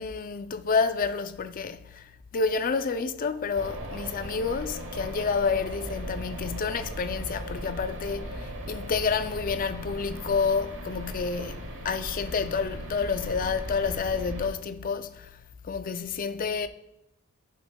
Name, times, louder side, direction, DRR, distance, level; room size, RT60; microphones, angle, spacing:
voice 1, 0.0-15.3 15.6-16.7, left 5 dB, 40° left, 0.4 m, -29 dB
sound 1, 3.5-14.5, right 1 dB, 55° right, 1.2 m, -37 dB
13.0 x 7.0 x 2.2 m
head